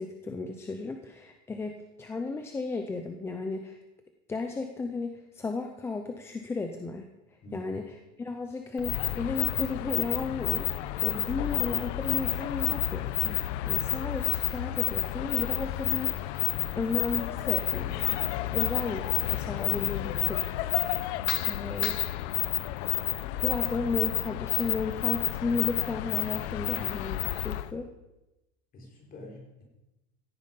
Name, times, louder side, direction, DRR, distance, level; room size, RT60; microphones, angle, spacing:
voice 1, 0.0-3.8 4.3-7.1 7.5-7.8 8.2-10.7 11.0-16.3 16.8-18.2 18.5-20.4 21.4-22.0 23.4-27.9, left 4 dB, 5° left, 5 dB, 0.4 m, -34 dB
voice 2, 7.4-7.7 19.9-20.3 21.5-21.7 28.7-29.6, left 2 dB, 25° left, 0 dB, 4.4 m, -47 dB
sound 1, 8.8-27.7, left 16 dB, 65° left, 0.9 m, -30 dB
16.5 x 14.0 x 5.3 m, 0.98 s
cardioid pair, 180°, 36 cm